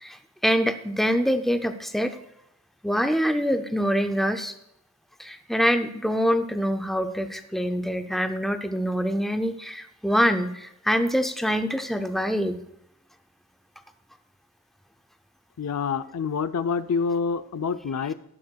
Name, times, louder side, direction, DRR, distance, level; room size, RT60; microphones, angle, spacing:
voice 1, 0.4-2.2 2.8-4.5 5.2-12.6, equal, ahead, 7 dB, 0.4 m, -25 dB
voice 2, 15.6-18.1, left 5 dB, 85° left, 12 dB, 0.5 m, -27 dB
13.5 x 11.5 x 2.3 m, 0.80 s
head